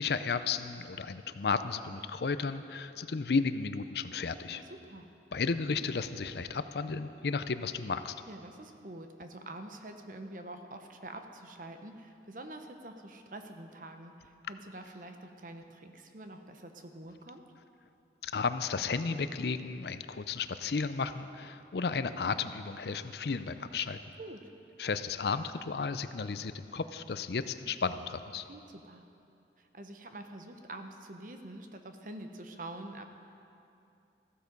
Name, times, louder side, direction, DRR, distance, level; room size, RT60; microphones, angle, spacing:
voice 1, 0.0-4.6 5.3-8.2 18.2-24.0 24.8-28.4, left 5 dB, 70° left, 11 dB, 0.5 m, -33 dB
voice 2, 4.5-5.1 8.3-17.4 24.2-24.4 28.5-29.0 29.6-33.0, right 1 dB, 50° right, 6 dB, 0.9 m, -46 dB
14.5 x 13.0 x 5.3 m, 2.6 s
head